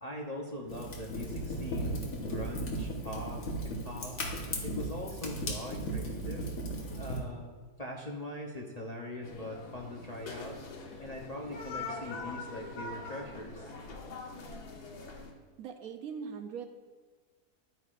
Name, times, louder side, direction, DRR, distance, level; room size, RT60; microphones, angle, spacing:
voice 1, 0.0-3.4 3.8-4.2 4.6-6.5 6.9-10.6 11.0-13.7, left 1 dB, 35° left, -2 dB, 0.6 m, -42 dB
Fire, 0.7-7.2, right 1 dB, 60° left, 1.6 m, -36 dB
sound 1, 9.2-15.3, left 3 dB, 90° left, 1.6 m, -43 dB
voice 2, 15.6-16.7, right 6 dB, 70° right, 6 dB, 1.1 m, -40 dB
11.0 x 8.8 x 2.5 m, 1.4 s
omnidirectional pair, 1.7 m